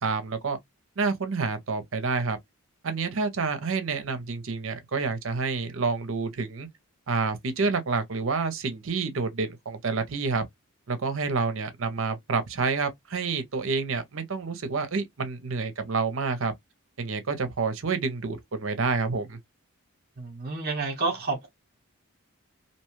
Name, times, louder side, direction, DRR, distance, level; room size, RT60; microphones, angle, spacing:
voice 1, 0.0-0.6 1.0-2.4 2.8-6.7 7.1-10.4 10.9-16.5 17.0-19.4, right 4 dB, 60° right, 0.6 m, -28 dB
voice 2, 20.2-21.5, right 3 dB, 45° right, 0.9 m, -29 dB
2.7 x 2.2 x 3.1 m
head